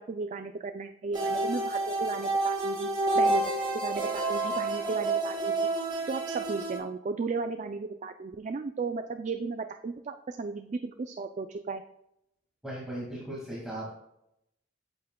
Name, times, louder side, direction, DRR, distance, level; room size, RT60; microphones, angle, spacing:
voice 1, 0.0-2.9 3.2-3.4 3.7-5.7 6.1-11.8, right 4 dB, 40° right, 8 dB, 0.3 m, -35 dB
sound 1, 1.1-6.8, right 2 dB, 25° right, 1.6 m, -29 dB
voice 2, 12.6-13.9, right 1 dB, 5° right, -6 dB, 1.9 m, -37 dB
8.5 x 7.8 x 2.2 m, 0.81 s
head